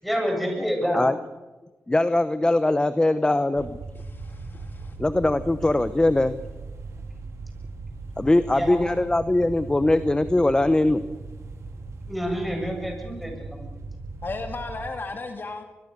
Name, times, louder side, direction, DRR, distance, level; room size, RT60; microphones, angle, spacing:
voice 1, 0.0-1.0 8.5-8.9 12.1-13.6, equal, ahead, 2 dB, 7.8 m, -28 dB
voice 2, 1.9-3.8 5.0-6.4 8.2-11.0, left 2 dB, 15° left, 12 dB, 0.9 m, -21 dB
sound 1, 3.6-14.9, right 3 dB, 80° right, 3.9 m, -38 dB
voice 3, 4.1-4.9 14.2-15.6, left 3 dB, 45° left, 6 dB, 2.2 m, -35 dB
23.5 x 22.5 x 6.8 m, 1.1 s
cardioid pair, 85°, 5 cm